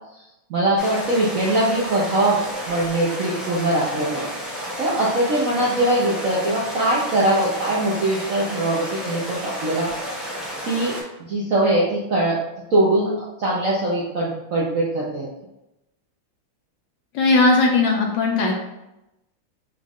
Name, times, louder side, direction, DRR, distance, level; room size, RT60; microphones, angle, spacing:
voice 1, 0.5-2.4 2.7-4.3 4.5-9.9 10.2-10.3 10.6-12.4 12.7-13.1 13.4-15.3, right 1 dB, 65° right, -5 dB, 0.8 m, -22 dB
sound 1, 0.8-11.0, equal, ahead, 0.4 m, -32 dB
voice 2, 17.1-18.6, left 3 dB, 70° left, 0 dB, 1.2 m, -18 dB
5.2 x 2.4 x 3.5 m, 0.90 s
omnidirectional pair, 2.3 m